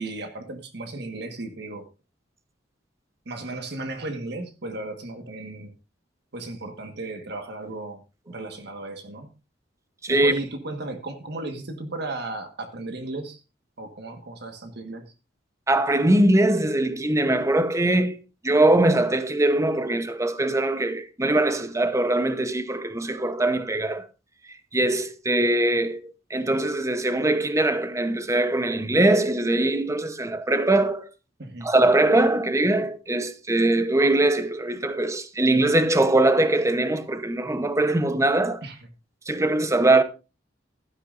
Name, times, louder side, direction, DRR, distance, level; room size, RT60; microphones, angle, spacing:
voice 1, 0.0-1.8 3.2-5.7 6.3-8.0 8.3-9.3 10.1-13.4 13.8-15.0 31.4-31.7 38.6-38.8, right 2 dB, 60° right, 1.6 m, -35 dB
voice 2, 15.7-18.2 18.4-24.1 24.7-31.1 31.6-38.6 39.3-40.0, right 2 dB, 15° right, 0.9 m, -22 dB
16.0 x 12.5 x 2.6 m
head